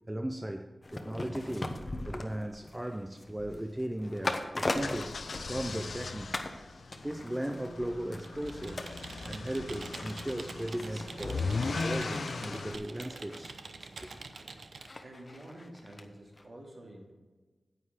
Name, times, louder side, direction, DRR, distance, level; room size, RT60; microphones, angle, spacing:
voice 1, 0.1-5.1 5.5-6.4 7.0-8.9 9.2-13.6 14.0-14.1, right 1 dB, 15° right, 0.5 m, -37 dB
sound 1, 0.8-6.0 6.3-6.6 6.9-16.0 16.4-16.5, left 2 dB, 30° left, 1.0 m, -41 dB
sound 2, 4.7-12.8, left 4 dB, 75° left, 0.7 m, -38 dB
Computer keyboard, 8.2-15.0, right 4 dB, 80° right, 0.7 m, -46 dB
voice 2, 15.0-17.1, right 1 dB, 50° right, 2.8 m, -49 dB
9.6 x 8.7 x 4.9 m
wide cardioid pair, 105°, 0 cm